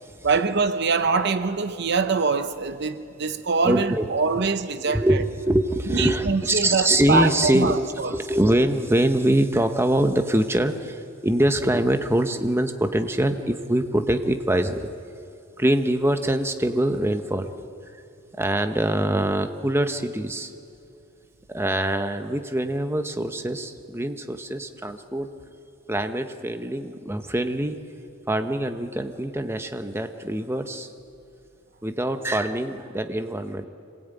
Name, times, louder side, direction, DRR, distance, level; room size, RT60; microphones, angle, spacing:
voice 1, 0.2-5.2 5.9-8.2, right 4 dB, 55° right, 0.8 m, -24 dB
voice 2, 3.6-4.0 4.9-14.9 15.6-17.5 18.4-20.5 21.5-25.3 25.9-27.8 28.3-30.9 31.8-33.7, right 1 dB, 10° right, 1.1 m, -24 dB
26.5 x 20.0 x 9.2 m
head